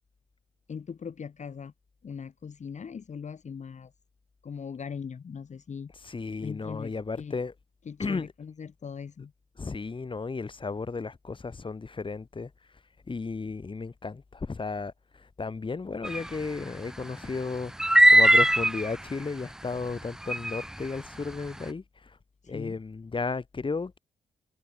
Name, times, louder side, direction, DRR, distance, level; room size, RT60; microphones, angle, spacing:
voice 1, 0.7-1.7 2.0-3.9 4.4-5.9 6.4-7.4 7.9-9.3 22.4-22.8, left 6 dB, 45° left, 3.7 m, -40 dB
voice 2, 6.0-7.5 8.0-8.3 9.6-12.5 13.1-17.7 18.1-22.2 22.5-24.0, left 4 dB, 30° left, 5.5 m, -34 dB
sound 1, 16.0-16.3 17.8-18.9 20.3-20.6, right 1 dB, 5° right, 0.5 m, -19 dB
cardioid pair, 80°, 16 cm